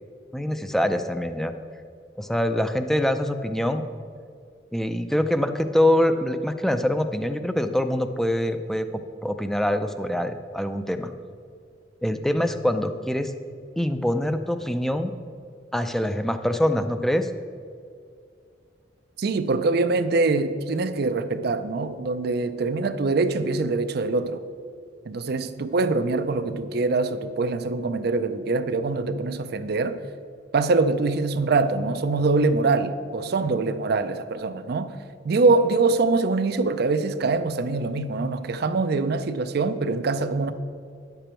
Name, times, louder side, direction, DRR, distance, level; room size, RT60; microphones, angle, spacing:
voice 1, 0.3-1.5 2.2-3.8 4.7-11.1 12.0-13.3 13.8-15.1 15.7-17.3, left 1 dB, ahead, 0.4 m, -24 dB
voice 2, 19.2-24.4 25.1-30.0 30.5-34.9 35.2-40.5, right 3 dB, 60° right, 0.5 m, -24 dB
10.0 x 6.9 x 4.4 m
head